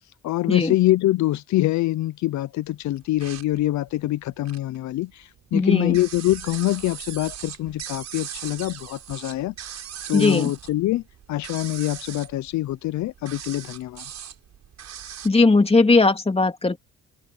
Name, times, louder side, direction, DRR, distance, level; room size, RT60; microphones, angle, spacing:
voice 1, 0.2-9.8 10.1-11.0 11.3-14.0, left 16 dB, 75° left, 0.6 m, -24 dB
sound 1, 3.0-4.8 5.1-15.3, right 9 dB, 65° right, 6.4 m, -39 dB
voice 2, 5.5-6.0 10.1-10.5 15.2-16.8, left 3 dB, 20° left, 3.0 m, -18 dB
cardioid pair, 80°, 29 cm